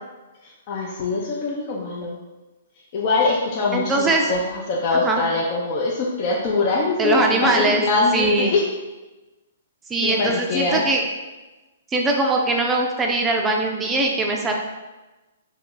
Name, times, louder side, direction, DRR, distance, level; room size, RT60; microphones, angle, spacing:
voice 1, 0.7-2.2 2.9-8.6 10.0-10.8, left 3 dB, 45° left, -3 dB, 0.7 m, -23 dB
voice 2, 3.7-4.3 4.9-5.2 7.0-7.8 8.1-8.5 9.9-11.0 11.9-14.5, right 2 dB, 15° right, 1 dB, 0.5 m, -21 dB
3.2 x 3.0 x 3.8 m, 1.1 s
figure-of-eight pair, 120°, 0 cm